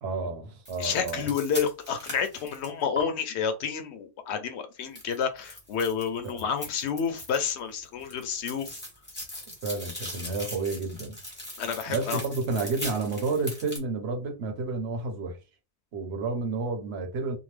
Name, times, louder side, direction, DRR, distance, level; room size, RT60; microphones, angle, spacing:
voice 1, 0.0-1.3 6.2-6.4 9.6-11.2 11.9-15.4 15.9-17.4, right 3 dB, 70° right, 1.0 m, -30 dB
sound 1, 0.6-3.0 4.9-7.6 7.8-13.8, left 1 dB, 10° left, 1.3 m, -39 dB
voice 2, 0.8-8.8 9.1-9.3 11.6-12.2, left 6 dB, 80° left, 0.9 m, -30 dB
2.8 x 2.0 x 3.2 m
omnidirectional pair, 1.1 m